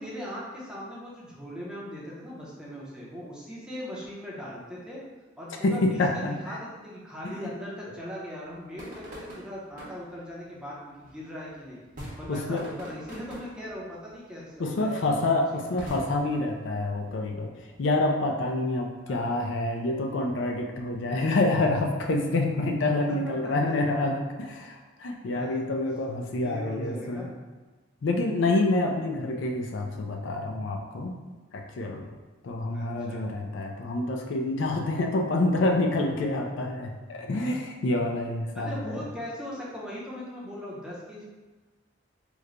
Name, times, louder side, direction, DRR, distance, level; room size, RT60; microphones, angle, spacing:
voice 1, 0.0-5.0 5.4-11.8 12.2-15.2 19.1-19.3 23.1-23.5 25.3-25.6 26.4-27.3 32.7-33.2 38.5-41.2, equal, 5° right, -6 dB, 0.6 m, -39 dB
voice 2, 5.6-6.6 7.2-7.3 12.3-12.6 14.6-17.5 17.8-27.3 28.0-31.1 31.5-32.1 32.4-39.0, left 2 dB, 65° left, 2 dB, 0.4 m, -27 dB
sound 1, 8.4-18.7, equal, 45° right, 0.9 m, -46 dB
3.1 x 2.1 x 3.7 m, 1.3 s
head